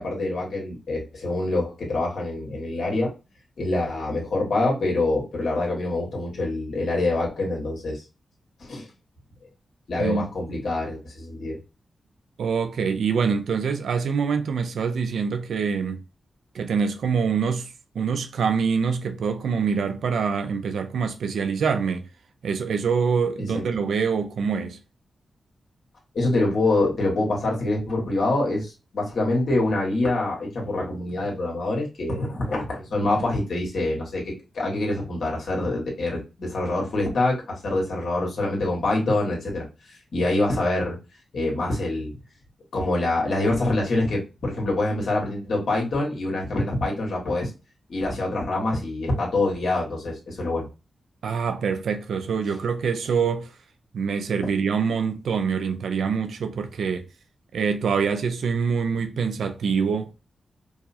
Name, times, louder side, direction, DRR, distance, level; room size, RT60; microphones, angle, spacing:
voice 1, 0.0-3.1 3.6-8.0 8.6-8.9 9.9-11.6 23.4-23.6 26.1-41.0 41.3-42.2 42.7-47.5 47.9-50.7, left 2 dB, 75° left, 1.5 m, -25 dB
voice 2, 12.4-16.0 16.5-22.1 22.4-24.8 51.2-53.5 53.9-57.1 57.5-60.1, right 6 dB, 85° right, 0.5 m, -25 dB
4.7 x 2.0 x 2.7 m
cardioid pair, 55°, 0 cm